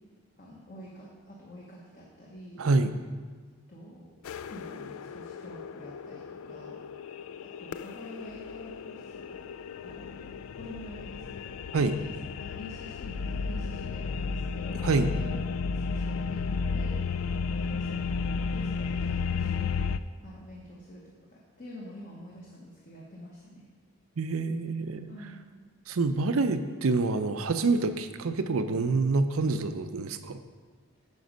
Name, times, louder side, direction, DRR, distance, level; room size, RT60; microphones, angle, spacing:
voice 1, 0.4-2.6 3.7-4.1 4.5-6.8 7.4-9.5 9.8-14.8 15.1-23.7 25.1-25.4, left 1 dB, 40° left, -4 dB, 1.1 m, -47 dB
voice 2, 2.6-2.9 11.7-11.9 14.8-15.1 24.2-25.1 25.9-30.4, right 3 dB, 80° right, 10 dB, 0.5 m, -26 dB
sound 1, 4.2-20.0, left 5 dB, 80° left, 0.3 m, -33 dB
9.4 x 5.2 x 5.2 m, 1.5 s
head